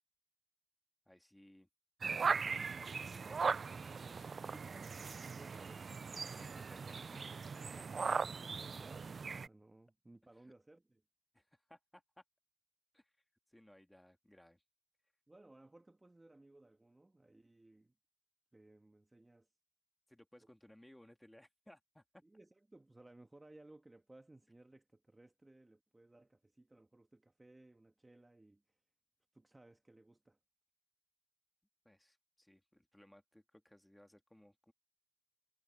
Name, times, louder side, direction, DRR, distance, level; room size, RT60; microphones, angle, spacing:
voice 1, 1.1-1.7 3.0-3.5 6.2-7.2 7.7-7.8 10.5-10.6 11.3-12.0 12.9-13.1 13.5-14.6 20.1-22.2 31.8-34.7, left 1 dB, 5° left, 2.5 m, -62 dB
sound 1, 2.0-9.5, right 5 dB, 40° right, 0.3 m, -39 dB
voice 2, 5.3-5.9 7.8-11.0 15.3-17.9 18.5-19.5 20.4-20.5 22.2-28.8 29.3-30.4, right 2 dB, 15° right, 1.5 m, -62 dB
cardioid pair, 90°, 0 cm